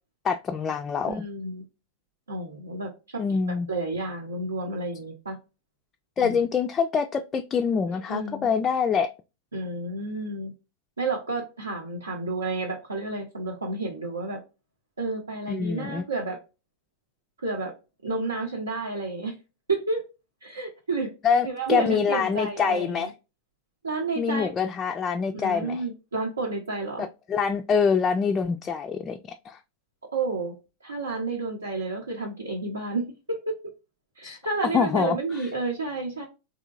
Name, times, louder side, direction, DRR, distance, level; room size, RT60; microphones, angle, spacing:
voice 1, 0.2-1.1 3.2-3.7 6.2-9.1 15.5-16.0 21.2-23.1 24.2-25.8 27.0-29.2 29.4-29.6 34.2-34.4 34.7-35.2, left 6 dB, 25° left, 0.3 m, -25 dB
voice 2, 1.1-1.6 2.3-3.2 3.7-5.4 6.2-6.4 7.9-8.5 9.5-10.5 11.0-14.4 15.0-16.4 17.4-17.7 18.0-19.4 19.7-20.0 20.4-21.1 21.4-23.0 23.8-24.5 25.3-27.1 30.1-30.5 30.8-33.6 34.2-36.3, right 3 dB, 75° right, 0.7 m, -30 dB
3.6 x 2.7 x 2.4 m
figure-of-eight pair, 90°, 0 cm